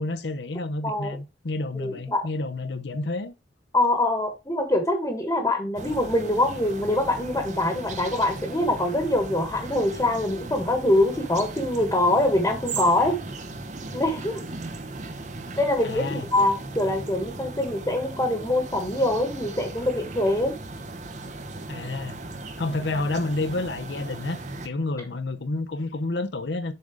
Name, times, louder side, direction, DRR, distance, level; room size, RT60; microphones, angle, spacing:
voice 1, 0.0-3.3 15.8-16.3 21.7-22.2 22.6-24.4 24.6-26.7, left 2 dB, 85° left, 0.8 m, -29 dB
voice 2, 0.8-1.2 1.7-2.2 3.7-13.2 13.9-14.4 15.6-20.5, left 1 dB, 20° left, 1.2 m, -24 dB
sound 1, 5.7-24.7, right 2 dB, 45° right, 0.8 m, -37 dB
6.9 x 3.8 x 4.9 m
head